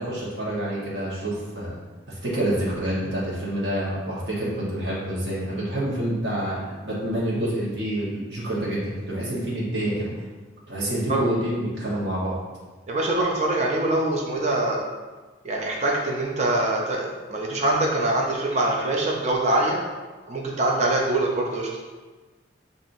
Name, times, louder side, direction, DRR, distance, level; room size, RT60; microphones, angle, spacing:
voice 1, 0.0-1.7 2.1-10.1 10.7-12.4, right 1 dB, 60° right, -7 dB, 1.2 m, -27 dB
voice 2, 12.9-14.9 15.4-19.8 20.3-21.7, right 2 dB, 35° right, -1 dB, 0.5 m, -24 dB
7.4 x 2.6 x 2.6 m, 1.3 s
head